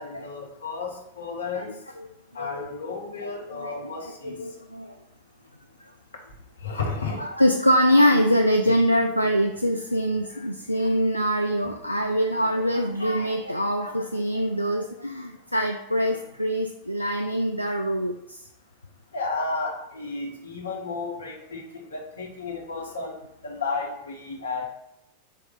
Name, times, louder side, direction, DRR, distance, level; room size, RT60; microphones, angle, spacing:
voice 1, 0.0-1.7 2.3-4.4 6.6-7.2 10.3-10.5 19.1-24.6, left 4 dB, 70° left, 0 dB, 1.0 m, -33 dB
voice 2, 3.2-5.0 7.2-18.5, equal, 85° left, 4 dB, 0.3 m, -24 dB
4.4 x 3.2 x 3.8 m, 0.79 s
figure-of-eight pair, 90°, 0 cm